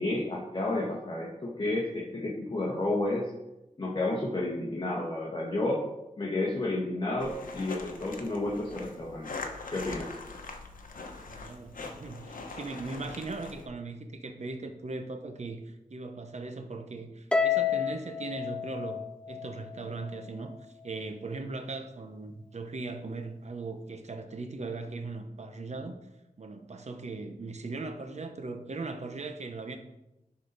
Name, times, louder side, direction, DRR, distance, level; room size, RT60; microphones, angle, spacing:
voice 1, 0.0-3.3 3.8-5.8 6.2-9.3 9.7-10.1 11.8-11.9, left 2 dB, 35° left, -4 dB, 1.4 m, -31 dB
sound 1, 7.2-13.7, left 3 dB, 75° left, 1.0 m, -42 dB
voice 2, 11.3-20.6 20.8-26.0 26.4-29.8, right 3 dB, 55° right, 6 dB, 0.9 m, -39 dB
Harp, 17.3-19.8, left 6 dB, 5° left, 0.4 m, -29 dB
11.0 x 4.1 x 4.0 m, 0.94 s
wide cardioid pair, 90°, 14 cm